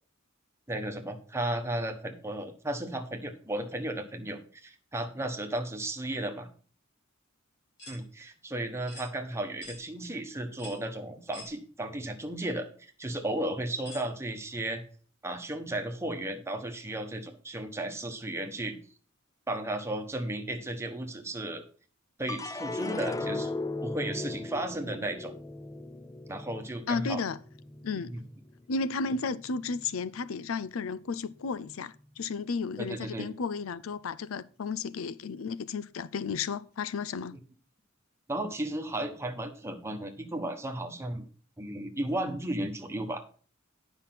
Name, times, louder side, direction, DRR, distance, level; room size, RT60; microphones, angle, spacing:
voice 1, 0.7-6.5 7.9-12.7 13.0-14.8 15.2-18.8 19.5-21.6 22.2-23.5 23.8-25.3 26.3-27.2 28.1-28.2 32.8-33.3 38.3-41.2 41.6-43.2, right 1 dB, 15° right, 1.3 m, -34 dB
sound 1, 7.8-8.0 8.9-9.1 9.6-9.8 10.6-10.8 11.3-11.5 12.4-12.5 13.8-14.1, left 1 dB, 60° left, 6.3 m, -45 dB
sound 2, 22.3-28.7 29.2-29.9, left 2 dB, 15° left, 0.5 m, -37 dB
voice 2, 26.9-27.4 27.8-28.1 28.7-37.4, left 4 dB, 80° left, 0.5 m, -33 dB
9.8 x 5.8 x 5.8 m
head